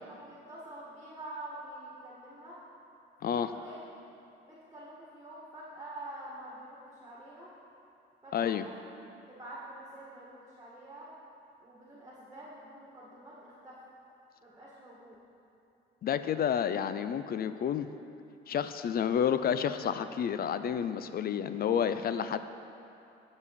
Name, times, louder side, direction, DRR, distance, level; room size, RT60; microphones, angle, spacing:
voice 1, 0.1-2.6 3.2-3.8 4.5-7.5 8.2-8.7 9.3-11.1 11.6-13.8 14.4-15.2, right 1 dB, 15° right, -6 dB, 1.7 m, -47 dB
voice 2, 8.3-8.6 16.0-17.9 18.5-22.4, left 8 dB, 50° left, 12 dB, 0.4 m, -30 dB
9.5 x 6.9 x 4.2 m, 2.7 s
cardioid pair, 90°, 20 cm